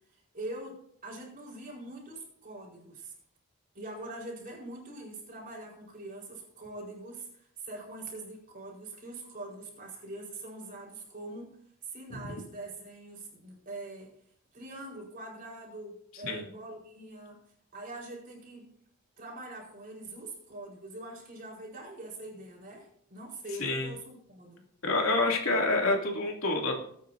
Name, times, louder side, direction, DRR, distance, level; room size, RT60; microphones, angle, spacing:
voice 1, 0.1-3.1 3.7-11.6 11.8-14.1 14.5-17.4 17.7-18.7 19.2-24.6, right 2 dB, 40° right, -2 dB, 4.6 m, -43 dB
voice 2, 24.8-26.7, left 2 dB, 85° left, 0 dB, 2.9 m, -27 dB
20.0 x 9.2 x 2.8 m, 0.65 s
head